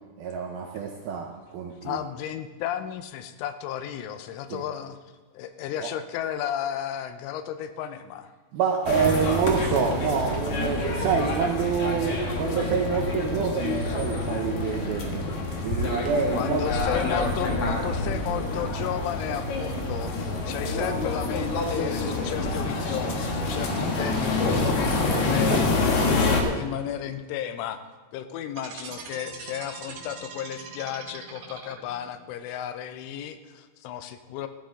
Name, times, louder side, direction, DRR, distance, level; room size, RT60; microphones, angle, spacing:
voice 1, 0.2-2.0 4.5-4.6 5.8-5.9 8.5-15.3 15.6-16.6 25.0-25.2 25.5-25.6, right 6 dB, 85° right, 1 dB, 2.2 m, -27 dB
voice 2, 1.8-5.0 5.3-8.3 16.3-27.8 28.1-34.5, left 10 dB, 90° left, 10 dB, 3.3 m, -34 dB
sound 1, 8.9-26.4, left 3 dB, 60° left, 2.0 m, -27 dB
sound 2, 28.5-32.1, right 5 dB, 65° right, 3.5 m, -41 dB
15.0 x 13.0 x 3.8 m, 1.4 s
omnidirectional pair, 5.5 m